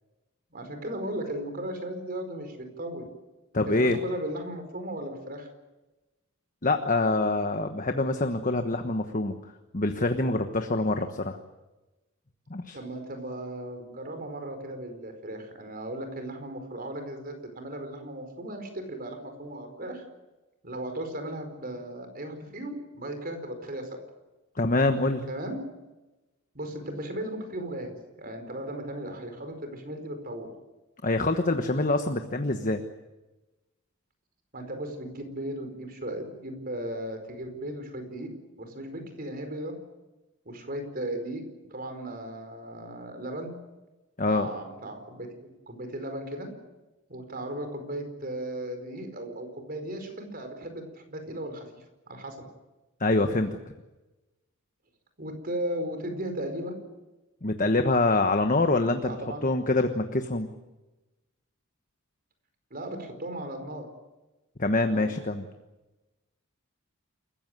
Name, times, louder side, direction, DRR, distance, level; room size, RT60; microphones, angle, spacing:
voice 1, 0.5-3.1 3.6-5.5 11.0-11.1 12.7-20.0 20.6-24.0 25.3-25.6 26.5-30.5 34.5-38.3 38.6-39.8 40.4-41.4 41.7-43.6 44.3-46.5 47.1-51.7 52.1-52.4 55.2-56.8 59.0-59.4 62.7-63.9 64.8-65.1, right 1 dB, 45° right, 6 dB, 4.7 m, -36 dB
voice 2, 3.5-4.0 6.6-9.4 9.7-11.4 12.5-12.8 24.6-25.3 31.0-32.8 44.2-44.5 53.0-53.6 57.4-59.1 59.4-60.5 64.6-65.4, left 2 dB, 40° left, 6 dB, 1.2 m, -25 dB
28.5 x 15.5 x 9.4 m, 1.1 s
head